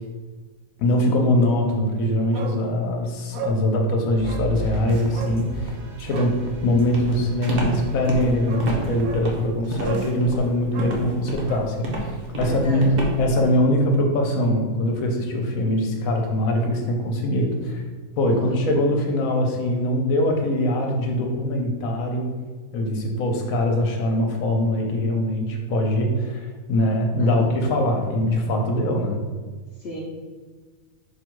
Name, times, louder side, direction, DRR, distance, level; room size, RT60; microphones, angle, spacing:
voice 1, 0.8-6.4 6.6-12.1 12.4-12.9 13.2-17.8 18.2-22.3 22.7-29.2, left 1 dB, 75° left, 2 dB, 1.2 m, -22 dB
Bark, 2.3-2.6 2.9-3.0 3.3-3.6 4.2-4.5 5.1-5.4 6.0-6.4 8.0-8.1 8.5-8.7 9.0-9.3 9.8-10.1 10.7-11.7 12.0-12.1, right 6 dB, 90° right, 1.1 m, -34 dB
sound 1, 4.1-9.1 9.6-10.1, right 2 dB, 60° right, 0.4 m, -35 dB
Walk footsteps, 6.9-13.4, right 1 dB, 40° right, 0.8 m, -28 dB
voice 2, 12.4-13.1 18.3-18.6 27.2-27.5 29.8-30.0, equal, 55° left, -3 dB, 0.8 m, -34 dB
5.0 x 2.3 x 4.6 m, 1.4 s
omnidirectional pair, 1.5 m